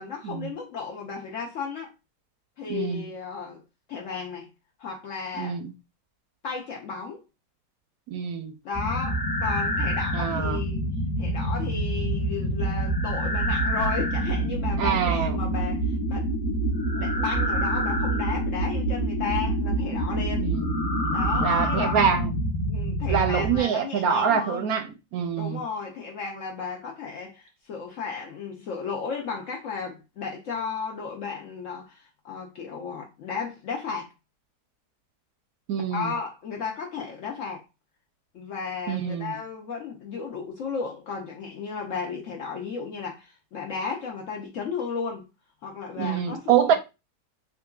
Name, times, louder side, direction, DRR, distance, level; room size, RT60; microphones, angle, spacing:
voice 1, 0.0-1.9 2.6-3.6 3.9-4.5 4.8-5.6 6.4-7.2 8.6-10.8 11.2-16.3 16.9-20.5 21.1-22.2 22.7-24.7 25.4-34.1 35.9-37.7 38.3-45.2 45.6-46.7, left 5 dB, 70° left, 0.7 m, -34 dB
voice 2, 2.7-3.0 5.4-5.7 8.1-8.5 10.1-10.6 14.8-15.4 20.4-20.8 21.4-22.3 23.1-25.6 35.7-36.1 38.9-39.3 46.0-46.7, right 7 dB, 70° right, 0.9 m, -25 dB
sound 1, 8.7-23.6, right 1 dB, 35° left, 0.7 m, -26 dB
3.7 x 2.5 x 2.3 m
omnidirectional pair, 1.8 m